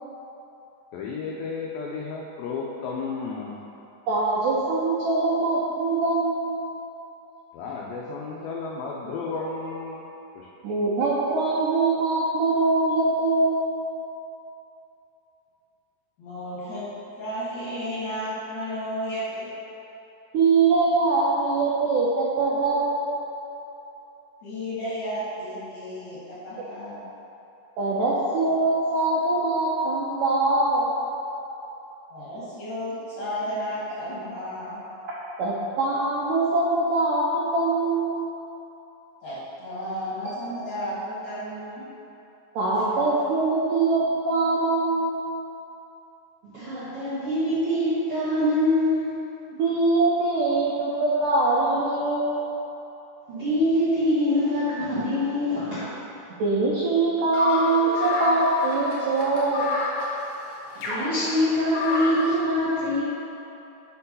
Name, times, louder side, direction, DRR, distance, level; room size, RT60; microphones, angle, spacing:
voice 1, 0.9-3.5 7.5-10.0 10.3-10.5, left 4 dB, 90° left, -3 dB, 2.0 m, -33 dB
voice 2, 4.1-6.6 10.6-13.7 20.3-23.1 27.8-30.9 35.4-38.3 42.6-45.3 49.5-52.5 56.4-59.7, right 3 dB, 90° right, -6 dB, 1.8 m, -23 dB
voice 3, 16.2-16.8 17.1-19.5 24.4-27.0 32.1-34.8 39.2-41.9, equal, 55° left, -10 dB, 2.3 m, -33 dB
voice 4, 46.4-49.1 53.3-55.8 60.7-63.0, left 1 dB, 65° right, -12 dB, 1.5 m, -24 dB
sound 1, 57.3-62.3, left 3 dB, 75° left, 2.0 m, -30 dB
5.8 x 4.5 x 5.3 m, 3.0 s
omnidirectional pair, 4.8 m